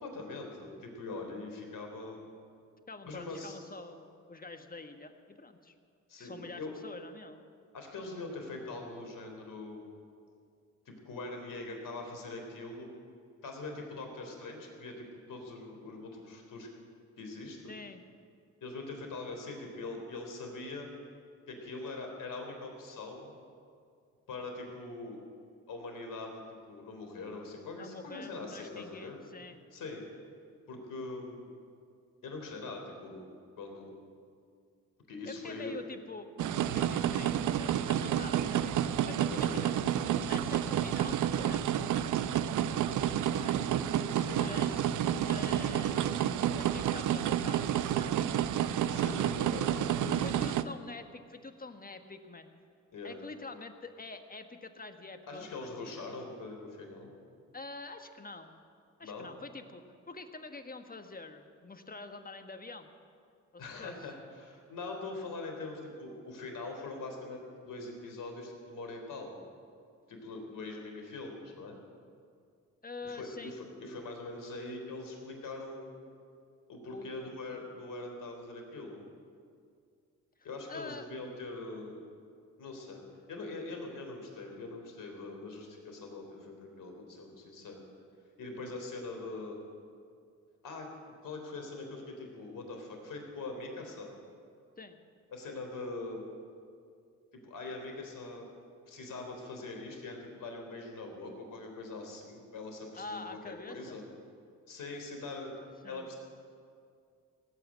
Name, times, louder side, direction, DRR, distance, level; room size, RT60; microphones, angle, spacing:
voice 1, 0.0-2.3 3.0-3.6 6.1-6.7 7.7-9.8 10.9-12.9 13.4-16.7 17.2-17.7 18.6-20.9 21.5-23.4 24.3-25.2 25.7-29.2 29.7-30.1 30.7-31.5 32.2-33.2 33.6-33.9 35.1-35.7 39.3-39.8 44.1-44.5 48.9-50.3 52.9-53.2 55.3-57.1 59.0-59.3 63.6-69.4 70.1-71.8 73.0-76.0 76.7-79.0 80.4-82.0 82.6-83.0 83.3-87.8 88.4-89.6 90.6-90.9 91.2-94.1 95.3-96.2 97.3-98.5 98.9-104.0 104.7-105.5 105.9-106.2, left 3 dB, 60° left, 3 dB, 3.8 m, -42 dB
voice 2, 2.9-5.7 6.2-7.4 17.7-18.0 27.7-29.6 35.3-39.7 40.3-42.7 43.2-43.7 44.3-46.2 46.6-48.1 50.1-52.5 53.0-56.0 57.5-58.5 59.0-62.9 63.5-64.1 72.8-73.5 76.9-77.3 80.4-81.1 94.8-95.0 103.0-104.0 105.8-106.1, left 3 dB, 25° left, 7 dB, 1.5 m, -46 dB
sound 1, 36.4-50.6, right 10 dB, 55° right, 0.7 m, -30 dB
17.5 x 8.5 x 9.7 m, 2.3 s
hypercardioid pair, 50°, 37 cm